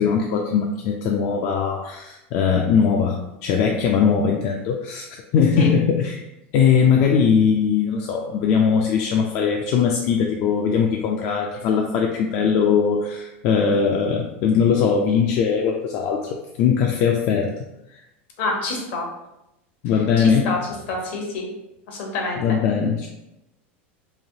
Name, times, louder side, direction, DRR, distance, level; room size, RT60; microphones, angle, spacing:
voice 1, 0.0-5.1 5.3-6.2 6.5-17.5 19.8-20.6 22.4-23.1, left 6 dB, 50° left, 1 dB, 0.3 m, -20 dB
voice 2, 18.4-19.1 20.2-20.6 20.9-21.5 21.9-22.6, left 3 dB, 70° left, 1 dB, 0.9 m, -26 dB
3.2 x 2.2 x 2.7 m, 0.89 s
hypercardioid pair, 115°, 6 cm